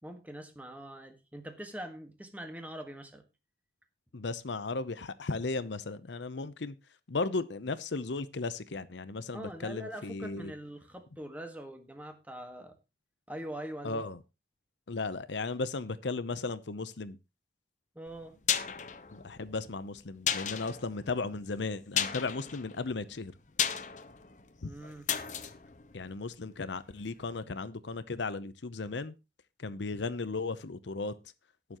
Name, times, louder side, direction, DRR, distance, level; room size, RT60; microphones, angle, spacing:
voice 1, 0.0-3.2 9.3-12.8 13.3-14.0 17.9-18.4 24.6-25.1, right 1 dB, 10° right, 1.6 m, -43 dB
voice 2, 4.1-6.7 7.1-10.5 13.8-14.2 14.9-17.2 19.1-23.3 24.6-24.7 25.9-29.1 29.6-31.1, left 3 dB, 85° left, 0.7 m, -35 dB
sound 1, 18.1-26.9 27.2-27.3, left 9 dB, 40° left, 0.8 m, -35 dB
19.5 x 7.0 x 3.0 m
head